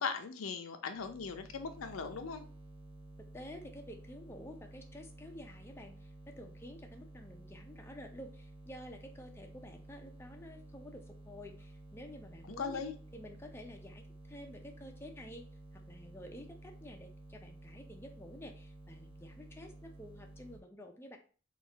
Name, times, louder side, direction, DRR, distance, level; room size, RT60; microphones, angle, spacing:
voice 1, 0.0-2.4 12.6-12.9, left 5 dB, 90° left, 7 dB, 0.5 m, -38 dB
sound 1, 0.9-20.6, right 2 dB, 25° right, 0.9 m, -53 dB
voice 2, 3.2-12.8 13.1-15.5 15.7-21.2, left 1 dB, 10° left, 2 dB, 0.5 m, -50 dB
3.9 x 2.4 x 3.9 m, 0.38 s
head